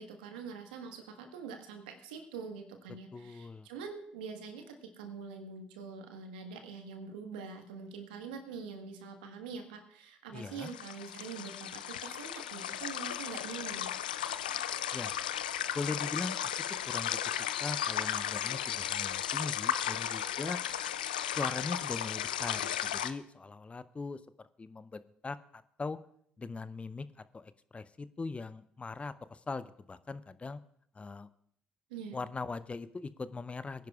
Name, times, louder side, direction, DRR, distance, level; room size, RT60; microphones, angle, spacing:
voice 1, 0.0-13.9 31.9-32.2, right 5 dB, 80° right, 5 dB, 1.4 m, -44 dB
voice 2, 3.1-3.7 10.3-10.7 14.9-15.1 15.7-16.5 16.8-17.2 17.6-20.6 21.4-24.2 24.6-26.0 26.4-30.6 30.9-31.3 32.1-33.9, left 4 dB, 25° left, 14 dB, 0.6 m, -40 dB
sound 1, 10.4-23.1, left 10 dB, 90° left, 0.4 m, -35 dB
23.0 x 10.5 x 2.4 m, 0.64 s
hypercardioid pair, 50°, 5 cm